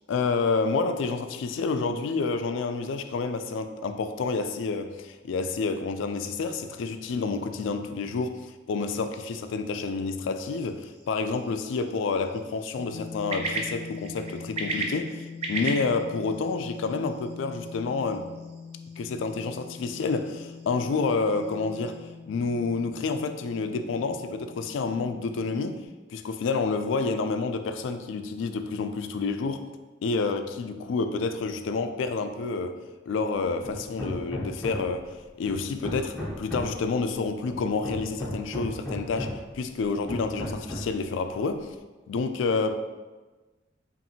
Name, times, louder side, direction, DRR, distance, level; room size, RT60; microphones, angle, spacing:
voice 1, 0.1-18.3 19.0-22.0 22.3-25.8 26.1-29.7 30.0-32.8 33.1-41.7 42.1-42.8, left 4 dB, 80° left, 8 dB, 0.3 m, -29 dB
sound 1, 10.5-22.1, right 2 dB, 30° right, 0.4 m, -39 dB
sound 2, 12.8-25.9, left 5 dB, 35° left, 0.7 m, -43 dB
Hammer, 33.6-35.0 35.5-36.9 37.5-39.5 40.1-41.0, left 1 dB, 5° left, 0.7 m, -35 dB
5.4 x 2.5 x 2.8 m, 1.2 s
head